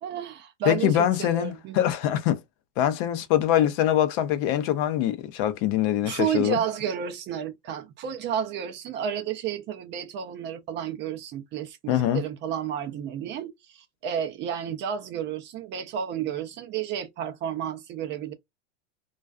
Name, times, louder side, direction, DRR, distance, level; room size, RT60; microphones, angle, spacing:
voice 1, 0.0-1.8 6.0-18.3, right 8 dB, 30° right, 0.4 m, -31 dB
voice 2, 0.7-2.4 2.8-6.6 11.9-12.2, left 11 dB, 50° left, 0.5 m, -23 dB
2.3 x 2.2 x 2.3 m
hypercardioid pair, 115°, 37 cm